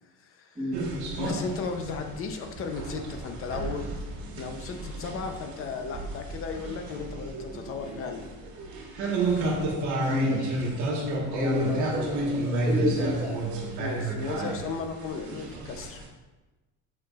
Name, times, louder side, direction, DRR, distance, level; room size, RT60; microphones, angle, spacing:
voice 1, 0.2-0.6 1.2-4.0 4.4-8.3 13.8-16.0, left 5 dB, 40° left, 4 dB, 0.8 m, -35 dB
sound 1, 0.7-16.1, right 2 dB, 65° right, 1.6 m, -31 dB
voice 2, 10.0-10.6 11.3-13.4, equal, 10° right, -8 dB, 1.3 m, -29 dB
8.4 x 6.0 x 2.5 m, 1.1 s
cardioid pair, 155°, 32 cm